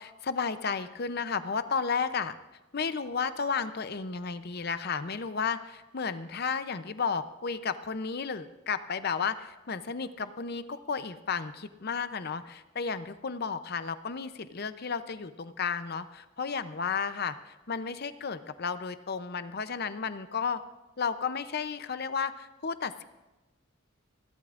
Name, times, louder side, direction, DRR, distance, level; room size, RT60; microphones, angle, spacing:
voice 1, 0.0-2.3 2.7-20.6 21.0-23.0, left 5 dB, 50° left, 12 dB, 0.7 m, -33 dB
29.5 x 12.0 x 2.5 m, 1.1 s
head